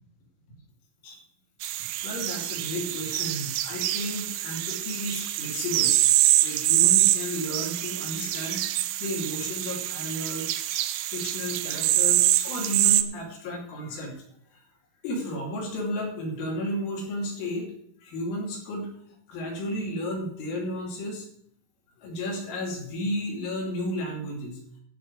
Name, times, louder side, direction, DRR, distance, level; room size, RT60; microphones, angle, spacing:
sound 1, 1.6-13.0, right 15 dB, 80° right, 2.4 m, -25 dB
voice 1, 1.7-6.0 6.4-8.6 9.0-10.6 11.1-14.2 15.0-17.7 18.0-18.9 19.3-21.3 22.0-24.6, left 1 dB, 80° left, -1 dB, 5.2 m, -33 dB
13.0 x 5.1 x 8.0 m, 0.69 s
omnidirectional pair, 5.5 m